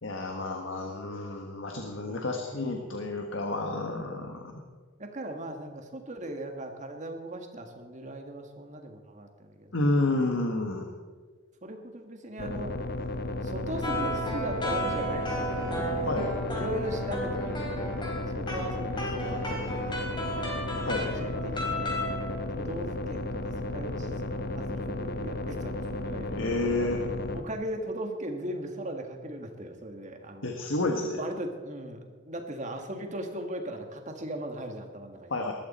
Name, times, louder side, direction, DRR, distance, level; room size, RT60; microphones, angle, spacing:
voice 1, 0.0-4.5 9.7-10.9 16.1-16.3 20.8-21.1 26.3-27.0 30.4-31.2 35.3-35.5, left 2 dB, 70° left, 3 dB, 1.5 m, -30 dB
voice 2, 2.1-3.0 4.3-4.7 5.0-10.1 11.6-12.7 13.4-15.9 16.5-18.0 18.3-20.5 21.0-22.0 22.6-26.5 27.3-30.5 31.1-35.3, right 1 dB, 35° right, 4 dB, 1.8 m, -39 dB
sound 1, 12.4-27.4, left 1 dB, 50° left, 1.0 m, -34 dB
sound 2, 13.8-22.2, equal, 25° left, 3.7 m, -33 dB
20.0 x 13.0 x 4.3 m, 1.5 s
head